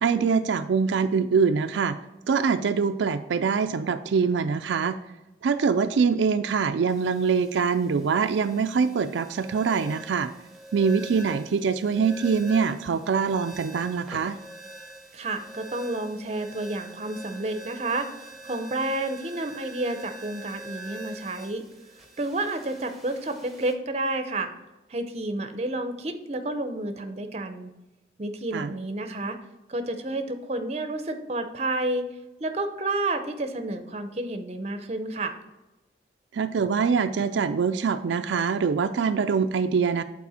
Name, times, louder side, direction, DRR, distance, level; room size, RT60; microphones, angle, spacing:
voice 1, 0.0-2.0 2.3-5.0 5.4-10.3 10.7-14.4 28.5-28.7 36.3-40.0, right 5 dB, 80° right, 8 dB, 0.4 m, -24 dB
sound 1, 6.9-23.7, right 1 dB, ahead, 1.0 m, -44 dB
voice 2, 15.1-18.2 18.4-21.6 22.2-24.5 24.9-27.7 28.2-29.4 29.7-32.1 32.4-35.3, right 2 dB, 35° right, 7 dB, 0.6 m, -30 dB
8.4 x 4.2 x 4.2 m, 1.0 s
head